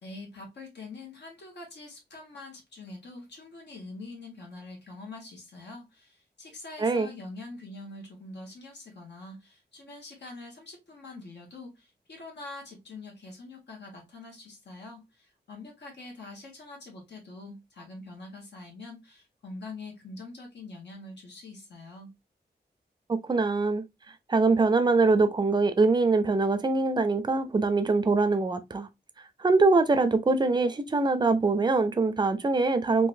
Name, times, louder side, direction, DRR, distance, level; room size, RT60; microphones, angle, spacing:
voice 1, 0.0-22.1, left 2 dB, 80° left, 1.4 m, -44 dB
voice 2, 23.1-23.8 24.3-28.9 29.4-33.1, right 3 dB, 25° right, 0.4 m, -23 dB
3.8 x 2.6 x 2.5 m
wide cardioid pair, 150°, 17 cm